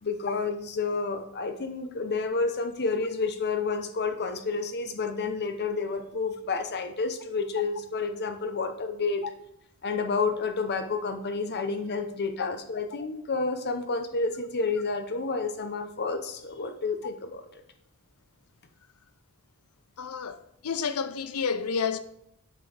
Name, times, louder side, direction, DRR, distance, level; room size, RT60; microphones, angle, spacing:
voice 1, 0.0-9.2 9.8-17.5, left 4 dB, 50° left, 0.8 m, -30 dB
voice 2, 20.0-22.0, left 6 dB, 90° left, 0.5 m, -30 dB
7.9 x 4.5 x 4.8 m
head